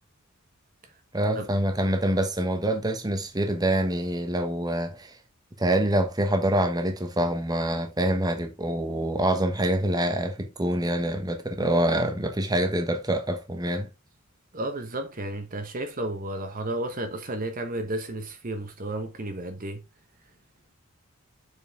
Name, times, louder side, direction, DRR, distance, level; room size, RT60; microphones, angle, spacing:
voice 1, 1.1-5.2 5.6-13.9, right 1 dB, 20° right, 1.1 m, -26 dB
voice 2, 14.5-19.8, right 1 dB, 40° right, 1.0 m, -32 dB
7.0 x 5.4 x 3.5 m
head